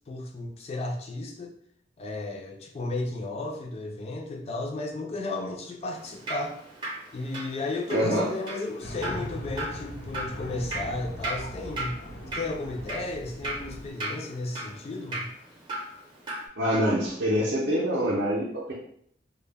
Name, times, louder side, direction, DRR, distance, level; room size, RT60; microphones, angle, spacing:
voice 1, 0.1-1.5 2.0-6.5 7.1-12.0 12.3-15.3, left 2 dB, 35° left, 2 dB, 0.3 m, -34 dB
Drip, 5.9-16.5, right 1 dB, 25° right, 0.6 m, -38 dB
voice 2, 7.9-8.3 16.6-18.7, equal, 65° right, -6 dB, 0.5 m, -25 dB
sound 1, 8.8-13.9, equal, 90° left, 0.9 m, -40 dB
2.1 x 2.0 x 3.2 m, 0.67 s
head